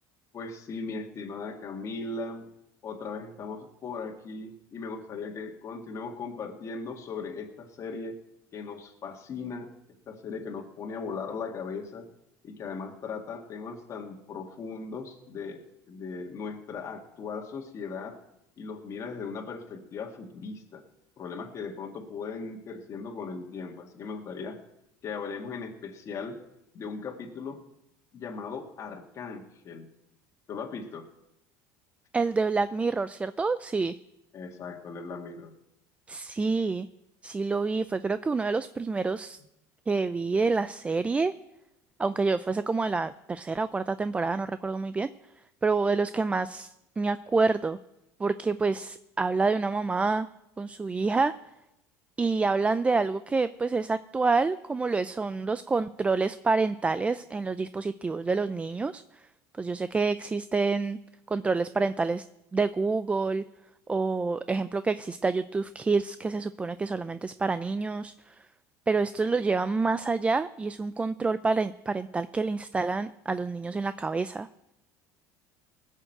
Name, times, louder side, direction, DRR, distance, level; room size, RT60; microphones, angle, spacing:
voice 1, 0.3-2.5 2.8-8.2 8.5-9.7 10.1-12.1 12.4-18.2 18.6-20.8 21.2-24.6 25.0-26.4 26.7-27.6 28.1-29.9 30.5-31.1 34.3-35.5, left 4 dB, 40° left, 1 dB, 1.9 m, -38 dB
voice 2, 32.1-34.0 36.1-36.9 37.2-39.4 39.9-41.3 42.0-45.1 45.6-47.8 48.2-50.3 50.6-51.3 52.2-59.2 59.6-61.0 61.3-62.2 62.5-63.4 63.9-68.5 68.9-74.5, right 4 dB, 15° right, 13 dB, 0.4 m, -27 dB
19.0 x 6.4 x 7.8 m, 0.88 s
supercardioid pair, 115°, 8 cm